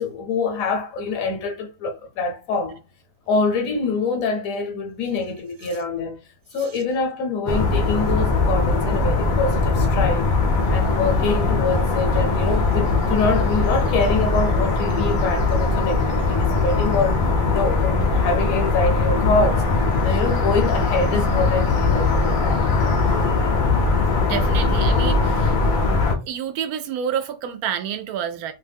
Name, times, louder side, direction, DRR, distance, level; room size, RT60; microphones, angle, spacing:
voice 1, 0.0-2.8 3.3-6.2 6.5-10.3 10.7-19.6 20.0-22.6, left 3 dB, 70° left, 1.1 m, -25 dB
sound 1, 7.5-26.1, left 3 dB, 55° left, 0.6 m, -20 dB
voice 2, 24.2-25.8 26.2-28.5, right 8 dB, 90° right, 1.1 m, -29 dB
2.7 x 2.2 x 3.3 m
omnidirectional pair, 1.5 m